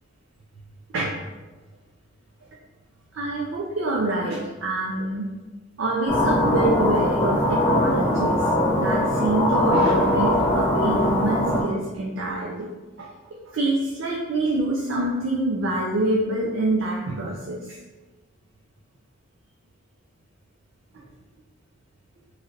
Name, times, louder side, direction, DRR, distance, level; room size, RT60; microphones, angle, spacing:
voice 1, 3.1-5.3 5.8-12.7 13.0-13.1 13.5-17.8 20.9-21.1, right 2 dB, 80° right, -4 dB, 0.5 m, -26 dB
sound 1, 6.1-11.6, left 1 dB, 10° left, 0.7 m, -21 dB
3.1 x 2.7 x 2.5 m, 1.2 s
head